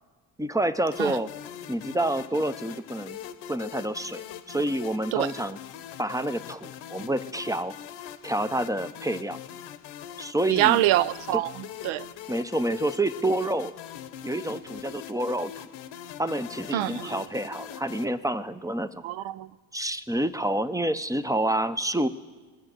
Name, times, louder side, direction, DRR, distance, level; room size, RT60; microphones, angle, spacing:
voice 1, 0.4-1.3 1.7-3.2 3.5-5.6 6.0-7.7 8.2-9.4 10.2-10.8 11.3-11.4 12.3-13.7 14.2-15.7 16.2-19.0 19.7-22.1, right 1 dB, 10° right, 0.5 m, -28 dB
sound 1, 0.9-18.1, left 10 dB, 75° left, 1.0 m, -42 dB
voice 2, 10.5-12.1 16.7-17.1 19.0-19.5, right 15 dB, 80° right, 0.6 m, -25 dB
19.5 x 6.5 x 7.6 m
supercardioid pair, 70°, 46 cm